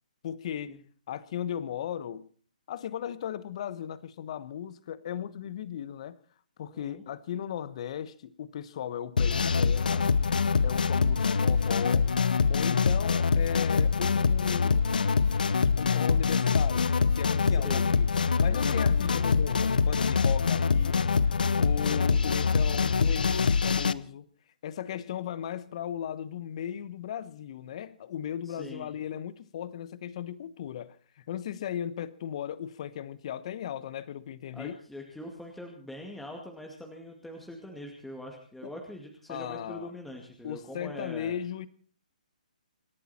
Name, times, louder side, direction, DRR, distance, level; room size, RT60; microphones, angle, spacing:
voice 1, 0.2-0.8 1.1-2.3 2.7-6.2 6.6-10.1 10.6-12.1 12.5-14.8 15.8-24.3 24.6-34.8 38.6-38.7 39.3-39.9 40.4-41.7, left 9 dB, 45° left, 1.1 m, -37 dB
voice 2, 6.7-7.0 17.5-17.8 18.7-18.9 28.4-28.9 34.5-41.3, left 1 dB, 5° left, 2.2 m, -43 dB
sound 1, 9.2-23.9, left 5 dB, 80° left, 0.8 m, -24 dB
26.5 x 11.0 x 4.3 m
hypercardioid pair, 145°, 5 cm